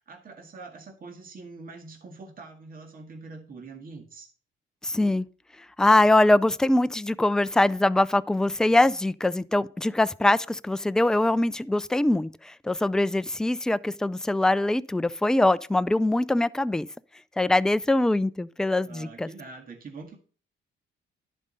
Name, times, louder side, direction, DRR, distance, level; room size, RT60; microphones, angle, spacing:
voice 1, 0.1-4.3 18.8-20.2, right 3 dB, 45° right, 2.0 m, -44 dB
voice 2, 4.8-5.3 5.8-16.9 17.4-19.3, left 2 dB, 5° left, 0.4 m, -23 dB
11.0 x 5.2 x 5.5 m
cardioid pair, 90°, 20 cm